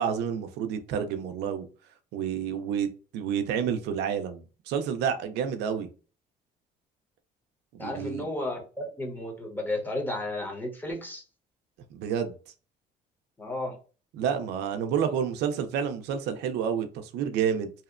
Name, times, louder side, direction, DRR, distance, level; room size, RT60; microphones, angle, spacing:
voice 1, 0.0-1.7 2.1-2.9 3.1-5.9 7.7-8.2 11.9-12.4 14.2-17.7, right 8 dB, 80° right, 0.4 m, -29 dB
voice 2, 7.8-11.2 13.4-13.8, left 1 dB, 10° left, 0.8 m, -33 dB
2.7 x 2.0 x 2.4 m
cardioid pair, 110°, 17 cm